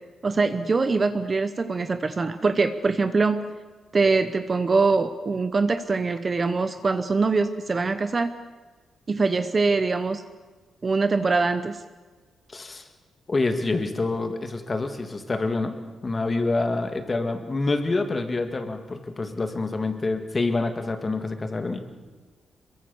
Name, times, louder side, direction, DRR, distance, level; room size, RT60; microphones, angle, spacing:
voice 1, 0.2-3.4 3.9-8.3 9.1-10.2 10.8-11.8, right 4 dB, 25° right, 10 dB, 0.8 m, -23 dB
voice 2, 12.5-12.9 13.3-15.8 16.0-21.8, left 3 dB, 20° left, 7 dB, 2.0 m, -27 dB
27.0 x 22.5 x 7.1 m, 1.3 s
wide cardioid pair, 180°, 0 cm